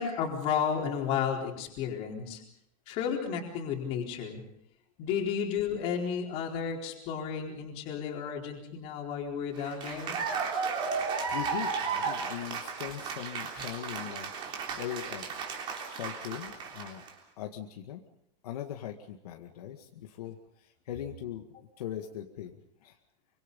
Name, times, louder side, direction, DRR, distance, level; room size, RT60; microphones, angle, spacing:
voice 1, 0.0-2.4 2.9-4.4 5.0-10.2, left 7 dB, 30° left, 1 dB, 4.2 m, -32 dB
Cheering / Applause, 9.6-17.1, right 5 dB, 25° right, 3.6 m, -34 dB
voice 2, 11.1-15.3 15.9-17.0 17.4-18.0 18.4-21.5 21.8-23.0, left 10 dB, 65° left, 3 dB, 2.1 m, -40 dB
25.5 x 25.0 x 5.5 m, 0.76 s
supercardioid pair, 180°, 21 cm